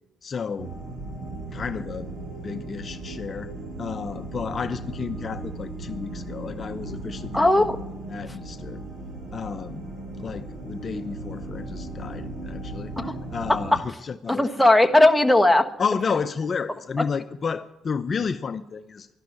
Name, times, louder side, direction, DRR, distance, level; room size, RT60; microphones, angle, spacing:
voice 1, 0.2-0.7 1.5-2.1 2.4-7.7 8.1-8.8 9.3-9.9 10.2-13.0 13.3-14.5 15.8-19.1, left 5 dB, 45° left, 10 dB, 0.7 m, -31 dB
sound 1, 0.6-13.8, right 2 dB, 65° right, 5.7 m, -36 dB
voice 2, 7.3-7.8 13.0-13.1 13.5-13.8 14.3-15.7 17.0-17.1, left 1 dB, 5° left, 4 dB, 1.3 m, -18 dB
12.0 x 11.5 x 9.3 m, 0.93 s
cardioid pair, 90°, 0 cm